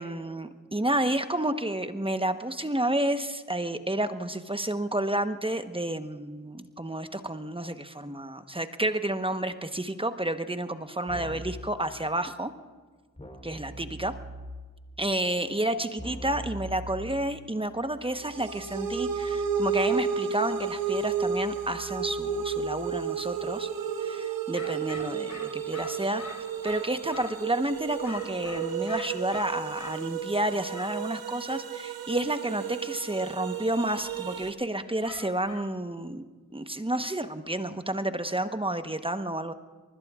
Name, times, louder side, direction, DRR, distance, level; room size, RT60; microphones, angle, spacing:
voice 1, 0.0-12.5 13.4-14.1 15.0-23.7 24.0-36.2 36.5-39.5, right 1 dB, 15° right, 9 dB, 1.1 m, -30 dB
Keyboard (musical), 11.1-11.7 13.2-14.7 16.0-23.0, right 1 dB, 20° left, 3.6 m, -44 dB
sound 1, 18.2-34.5, right 6 dB, 85° right, 1.0 m, -32 dB
sound 2, 24.5-27.4 28.0-30.0 30.7-31.0 35.0-35.7, left 2 dB, 55° left, 6.9 m, -43 dB
26.0 x 20.0 x 2.5 m, 1.4 s
cardioid pair, 40°, 35 cm